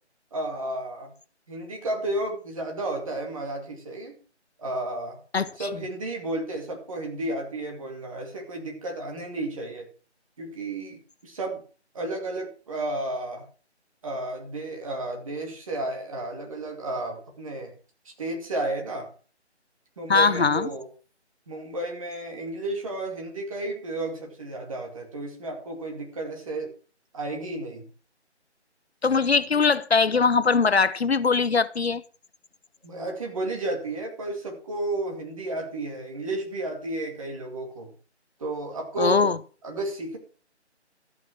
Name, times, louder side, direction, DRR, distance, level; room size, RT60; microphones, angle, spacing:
voice 1, 0.3-1.1 1.5-4.2 4.6-5.2 5.6-9.9 10.4-11.6 11.9-13.4 14.0-17.7 18.0-19.1 20.0-20.9 21.5-26.7 27.1-27.9 32.8-37.9 38.4-39.3 39.6-40.2, right 2 dB, 30° right, 2.4 m, -32 dB
voice 2, 5.3-5.7 20.1-20.7 29.0-32.0 39.0-39.4, left 5 dB, 60° left, 0.7 m, -21 dB
13.5 x 6.1 x 6.1 m
figure-of-eight pair, 160°, 35 cm